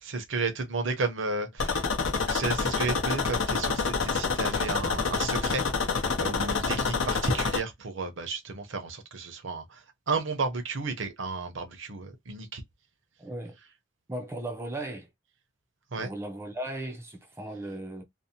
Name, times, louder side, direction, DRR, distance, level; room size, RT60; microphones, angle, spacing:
voice 1, 0.0-1.9 2.3-5.6 5.9-12.6 15.9-16.1, right 3 dB, 70° right, 0.7 m, -33 dB
sound 1, 1.6-7.6, left 4 dB, 75° left, 0.6 m, -27 dB
voice 2, 13.2-13.6 14.1-15.1 16.0-18.0, right 1 dB, 10° right, 0.4 m, -36 dB
2.6 x 2.0 x 2.7 m
head